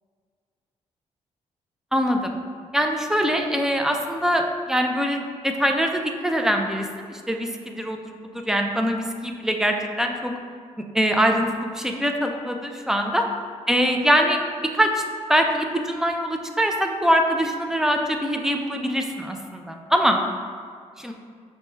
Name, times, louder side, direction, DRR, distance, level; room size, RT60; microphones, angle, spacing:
voice 1, 1.9-2.4 2.7-10.3 10.9-13.3 13.7-15.0 15.3-20.2 21.0-21.1, equal, 5° right, 3 dB, 0.4 m, -23 dB
5.7 x 2.2 x 3.1 m, 2.1 s
cardioid pair, 90°, 12 cm